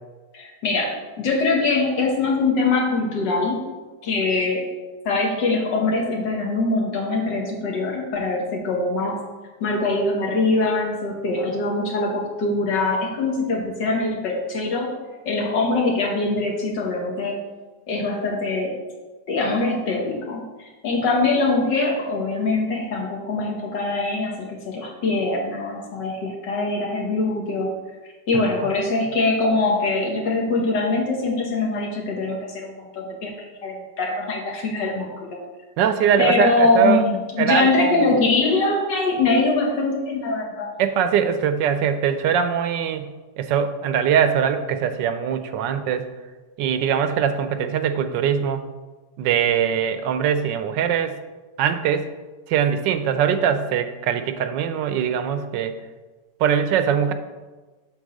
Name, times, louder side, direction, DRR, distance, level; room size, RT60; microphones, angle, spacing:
voice 1, 0.3-3.7 4.0-4.7 5.1-9.2 9.6-14.9 15.3-17.4 17.9-18.7 19.3-27.7 28.3-35.4 36.2-40.7, left 3 dB, 80° left, 0 dB, 2.1 m, -23 dB
voice 2, 35.8-37.0 37.4-38.1 40.8-46.1 46.6-48.6 49.2-51.2 51.6-52.1 52.5-55.7 56.4-57.1, right 8 dB, 85° right, 9 dB, 1.3 m, -22 dB
8.1 x 4.0 x 6.4 m, 1.3 s
omnidirectional pair, 1.9 m